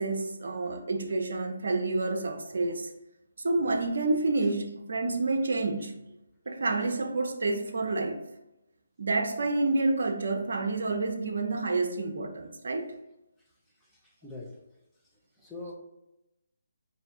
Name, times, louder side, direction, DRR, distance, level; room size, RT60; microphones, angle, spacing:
voice 1, 0.0-2.9 3.4-5.9 6.5-8.2 9.0-12.9, right 2 dB, 65° right, 5 dB, 0.7 m, -29 dB
voice 2, 13.8-14.6 15.3-15.7, left 2 dB, ahead, -5 dB, 0.8 m, -44 dB
4.2 x 2.8 x 3.6 m, 0.91 s
figure-of-eight pair, 150°, 0 cm